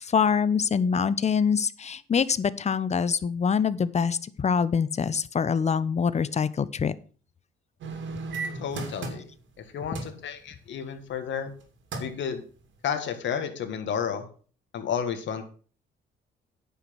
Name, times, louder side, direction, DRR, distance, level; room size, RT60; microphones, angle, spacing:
voice 1, 0.0-6.9, left 6 dB, 35° left, 17 dB, 0.8 m, -25 dB
sound 1, 7.8-9.6 10.0-10.2 11.5-11.6 11.9-12.3 12.8-12.9, right 3 dB, 70° right, 2.9 m, -35 dB
voice 2, 8.5-9.3 9.6-11.5 12.0-12.4 12.8-14.3 14.7-15.4, left 7 dB, 70° left, 7 dB, 1.8 m, -31 dB
9.7 x 5.9 x 6.2 m, 0.40 s
cardioid pair, 90°, 20 cm